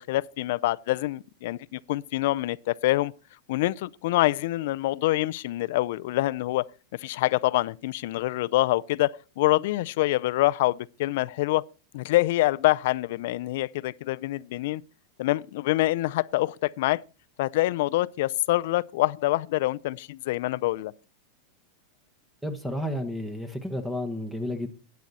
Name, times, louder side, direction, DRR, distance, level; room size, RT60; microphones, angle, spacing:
voice 1, 0.0-3.1 3.5-6.6 7.0-11.6 11.9-14.8 15.2-17.0 17.4-20.9, left 17 dB, 65° left, 0.4 m, -26 dB
voice 2, 22.4-24.7, left 1 dB, 5° right, 1.2 m, -31 dB
11.5 x 9.4 x 4.1 m
supercardioid pair, 140°, 0 cm